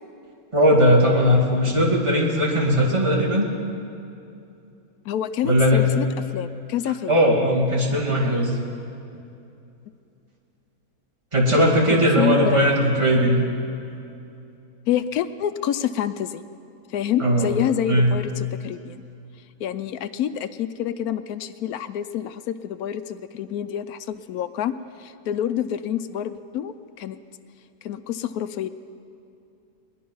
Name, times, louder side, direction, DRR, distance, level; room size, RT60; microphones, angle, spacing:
voice 1, 0.5-3.5 5.4-5.8 7.1-8.6 11.3-13.4 17.2-17.5 17.9-18.1, equal, 20° right, -3 dB, 2.3 m, -18 dB
voice 2, 5.0-6.1 6.3-7.2 11.5-12.7 14.9-16.4 16.9-19.0 19.6-24.7 25.0-27.2 27.8-28.7, left 10 dB, 75° left, 12 dB, 1.0 m, -27 dB
21.0 x 11.0 x 5.4 m, 2.7 s
omnidirectional pair, 1.6 m